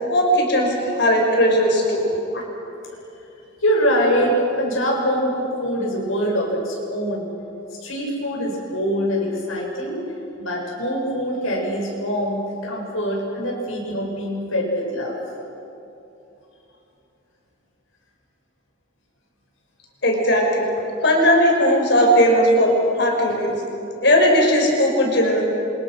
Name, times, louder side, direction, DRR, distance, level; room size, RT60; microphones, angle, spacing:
voice 1, 0.1-2.0 2.3-2.4 20.0-20.6 21.0-22.7 23.0-23.6 24.0-25.4, equal, 55° left, 0 dB, 5.9 m, -17 dB
voice 2, 3.6-7.3 7.8-10.0 10.4-15.1, equal, 85° left, -2 dB, 7.3 m, -23 dB
28.0 x 26.0 x 6.4 m, 2.9 s
head